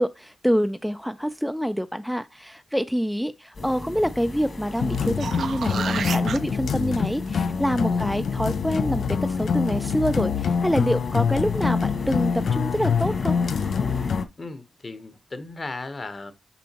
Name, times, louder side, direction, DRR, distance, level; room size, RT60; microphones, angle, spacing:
voice 1, 0.0-13.4, equal, ahead, 0.3 m, -26 dB
sound 1, 3.5-14.2, left 2 dB, 50° left, 2.0 m, -36 dB
sound 2, 4.8-14.2, left 6 dB, 80° left, 0.4 m, -25 dB
sound 3, 4.9-6.4 11.2-11.3, right 7 dB, 85° right, 0.5 m, -31 dB
voice 2, 14.4-16.3, left 3 dB, 35° left, 1.0 m, -36 dB
6.9 x 5.1 x 2.9 m
wide cardioid pair, 120°, 0 cm